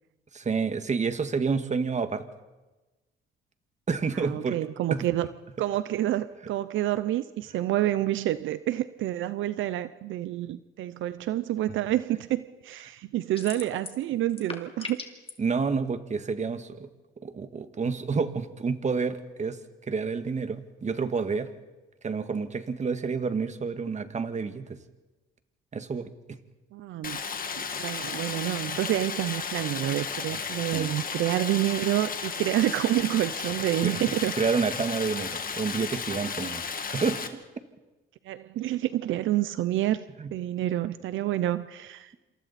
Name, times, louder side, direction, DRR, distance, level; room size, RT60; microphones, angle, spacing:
voice 1, 0.3-2.3 3.9-4.6 4.9-5.1 15.4-16.9 17.2-19.6 19.9-21.5 22.0-24.8 25.7-26.1 30.7-30.9 33.8-33.9 34.4-36.6 36.9-37.2 40.2-40.3, right 5 dB, 35° right, 10 dB, 1.8 m, -29 dB
voice 2, 4.1-5.3 5.6-15.0 26.7-27.2 27.7-34.4 38.2-40.0 40.3-42.1, right 14 dB, 80° right, 14 dB, 0.7 m, -28 dB
sound 1, 13.4-14.0 14.3-15.3, left 4 dB, 30° left, 2.6 m, -38 dB
Stream, 27.0-37.3, left 6 dB, 45° left, 2.1 m, -34 dB
27.5 x 27.0 x 4.3 m, 1.1 s
cardioid pair, 90°, 20 cm